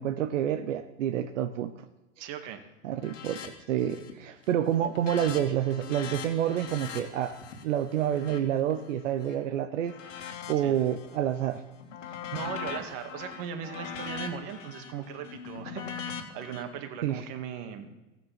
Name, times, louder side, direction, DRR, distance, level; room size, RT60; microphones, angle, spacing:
voice 1, 0.0-1.7 2.8-10.0 10.5-11.6 17.0-17.3, right 10 dB, 80° right, 10 dB, 0.9 m, -28 dB
voice 2, 2.2-2.6 10.6-10.8 12.0-17.9, right 8 dB, 45° right, 7 dB, 1.8 m, -38 dB
sound 1, 3.0-3.5 3.8-4.2 4.5-9.3 9.8-11.2 11.5-16.6, left 7 dB, 90° left, 2.6 m, -41 dB
15.5 x 9.3 x 5.9 m, 1.1 s
hypercardioid pair, 130°, 37 cm